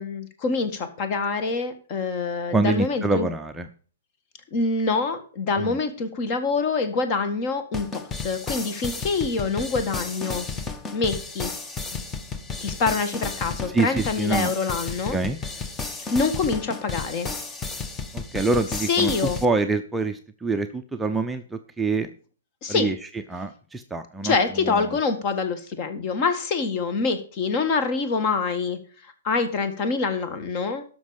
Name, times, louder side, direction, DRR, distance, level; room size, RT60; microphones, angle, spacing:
voice 1, 0.0-3.3 4.5-10.5 10.9-11.5 11.9-12.0 12.6-15.2 16.1-17.3 18.9-19.4 22.6-22.9 24.2-30.8, left 4 dB, 35° left, 9 dB, 1.8 m, -25 dB
voice 2, 2.5-3.7 5.6-5.8 13.7-14.5 15.1-15.4 18.1-19.1 19.4-22.1 22.7-23.0 23.3-24.9, right 3 dB, 5° right, 5 dB, 0.6 m, -25 dB
sound 1, 7.7-19.5, left 4 dB, 15° left, 1.0 m, -33 dB
12.5 x 6.0 x 5.2 m, 0.40 s
figure-of-eight pair, 120°, 0 cm